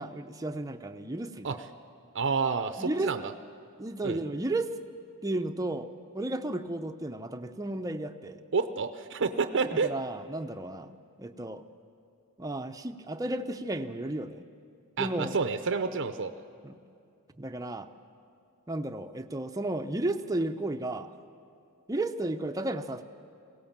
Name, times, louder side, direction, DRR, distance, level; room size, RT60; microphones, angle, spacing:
voice 1, 0.0-1.6 2.8-3.1 3.8-4.7 5.2-5.9 6.1-8.4 9.7-10.9 11.2-11.6 12.4-14.4 15.0-15.4 16.6-16.7 17.4-17.9 18.7-21.1 21.9-23.0, right 2 dB, 15° right, 6 dB, 0.6 m, -33 dB
voice 2, 2.1-3.3 4.0-4.2 8.5-9.9 15.0-16.3, right 5 dB, 55° right, 9 dB, 0.6 m, -29 dB
22.0 x 17.0 x 7.3 m, 2.5 s
head